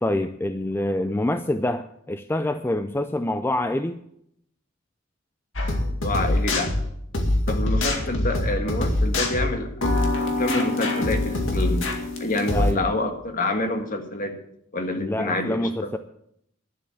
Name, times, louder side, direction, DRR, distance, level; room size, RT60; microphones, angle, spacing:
voice 1, 0.0-4.0 12.5-12.9 15.0-16.0, left 1 dB, 10° left, 10 dB, 0.4 m, -26 dB
sound 1, 5.6-12.7, left 1 dB, 65° left, 2.2 m, -24 dB
voice 2, 5.6-6.7 7.5-11.8 12.2-14.3 14.7-15.9, left 2 dB, 40° left, 5 dB, 1.7 m, -27 dB
11.5 x 7.6 x 8.6 m, 0.74 s
head